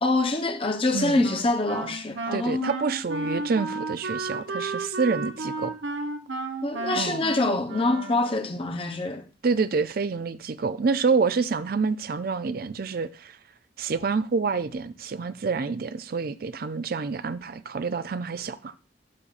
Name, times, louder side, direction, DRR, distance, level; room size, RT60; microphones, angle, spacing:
voice 1, 0.0-2.7 6.6-9.2, left 2 dB, 30° left, 0.8 m, -25 dB
voice 2, 0.9-1.2 2.3-5.7 6.9-7.3 9.4-13.4 13.8-18.7, right 4 dB, 50° right, 0.5 m, -27 dB
Wind instrument woodwind instrument, 1.2-8.6, right 3 dB, 75° right, 1.0 m, -33 dB
11.5 x 5.5 x 2.5 m
head